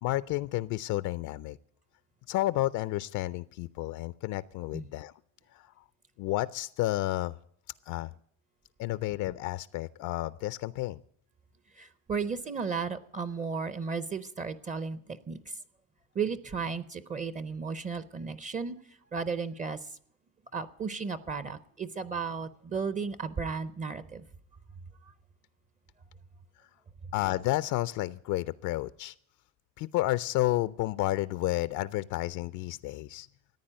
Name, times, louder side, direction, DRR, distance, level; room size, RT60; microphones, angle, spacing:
voice 1, 0.0-1.6 2.3-5.1 5.5-5.7 6.2-7.3 7.9-8.1 8.8-11.0 27.1-29.1 29.8-33.3, left 17 dB, 65° left, 16 dB, 0.5 m, -31 dB
voice 2, 11.8-15.6 16.1-18.8 19.1-19.9 20.5-24.2, right 5 dB, 25° right, 14 dB, 0.6 m, -34 dB
14.5 x 9.6 x 8.7 m, 0.66 s
cardioid pair, 155°, 32 cm